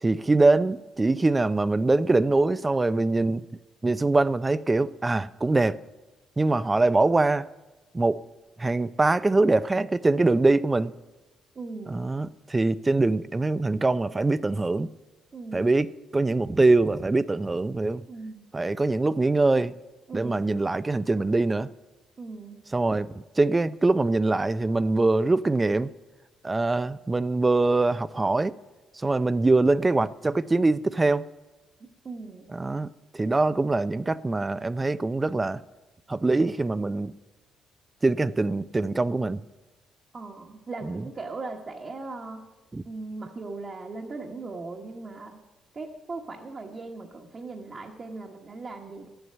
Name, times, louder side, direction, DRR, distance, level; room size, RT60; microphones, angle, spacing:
voice 1, 0.0-3.5 3.8-5.8 6.4-7.5 7.9-8.2 8.6-10.9 11.9-14.9 15.5-18.0 18.5-19.7 20.1-21.7 22.7-25.9 26.4-28.6 28.9-31.3 32.5-35.6 36.1-37.1 38.0-39.4 40.8-41.0 42.7-42.8, right 2 dB, 20° right, 0.4 m, -23 dB
voice 2, 11.5-12.1 15.3-15.7 18.1-18.5 20.1-20.5 22.2-22.6 32.0-32.5 40.1-42.4 42.8-45.4 45.7-49.1, right 3 dB, 40° right, 1.3 m, -38 dB
12.0 x 7.9 x 7.9 m
cardioid pair, 90°, 0 cm